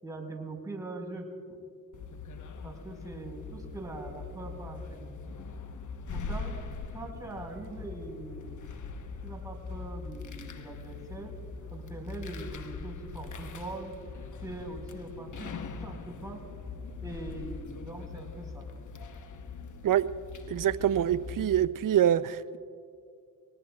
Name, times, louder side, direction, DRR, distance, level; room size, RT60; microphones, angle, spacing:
voice 1, 0.0-1.3 2.6-5.1 6.1-6.6 6.9-8.7 9.2-11.3 11.7-13.9 14.4-15.5 15.8-16.4 17.0-18.7 20.9-21.1, right 2 dB, 10° right, -1 dB, 4.6 m, -42 dB
sound 1, 1.9-21.6, left 4 dB, 50° left, 1.1 m, -42 dB
voice 2, 20.5-22.6, right 10 dB, 55° right, 16 dB, 0.6 m, -25 dB
23.5 x 19.0 x 2.4 m, 2.2 s
supercardioid pair, 55°, 40 cm